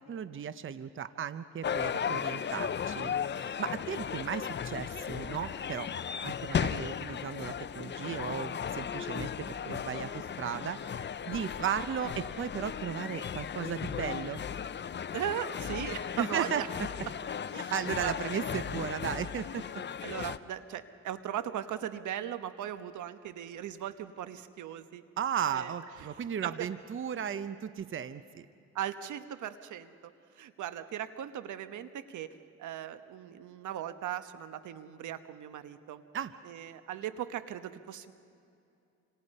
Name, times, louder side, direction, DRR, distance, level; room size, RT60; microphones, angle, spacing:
voice 1, 0.1-3.1 3.6-5.9 6.2-14.4 16.2-16.6 17.7-19.6 25.2-28.5 36.1-36.3, right 8 dB, 40° right, 12 dB, 0.8 m, -35 dB
sound 1, 1.6-20.4, left 8 dB, 35° left, 0.7 m, -36 dB
voice 2, 15.1-16.7 17.5-17.7 18.0-18.1 20.0-25.0 25.5-25.7 26.1-26.7 28.7-36.0 36.4-38.1, right 10 dB, 75° right, 11 dB, 1.2 m, -38 dB
28.0 x 26.0 x 5.5 m, 2.6 s
cardioid pair, 90°, 30 cm